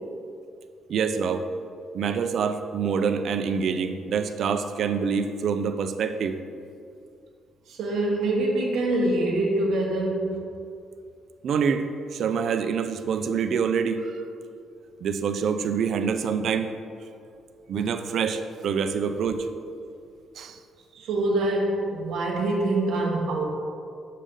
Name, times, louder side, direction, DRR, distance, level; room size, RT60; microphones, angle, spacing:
voice 1, 0.9-1.5 1.9-6.4 11.4-14.2 15.0-16.7 17.7-19.5 20.4-20.6, right 6 dB, 65° right, 8 dB, 0.5 m, -26 dB
voice 2, 7.7-10.4 20.9-23.4, right 2 dB, 85° right, -2 dB, 1.2 m, -25 dB
6.7 x 6.4 x 3.8 m, 2.4 s
cardioid pair, 90°, 0 cm